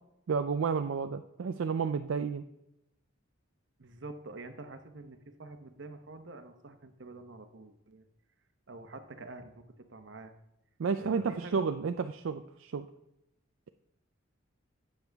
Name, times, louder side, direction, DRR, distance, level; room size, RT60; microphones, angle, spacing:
voice 1, 0.3-2.5 10.8-12.9, right 5 dB, 80° right, 8 dB, 0.4 m, -31 dB
voice 2, 3.8-8.0 8.7-10.3 11.0-11.9, right 2 dB, 65° right, 7 dB, 1.0 m, -47 dB
12.0 x 7.9 x 3.5 m, 0.85 s
head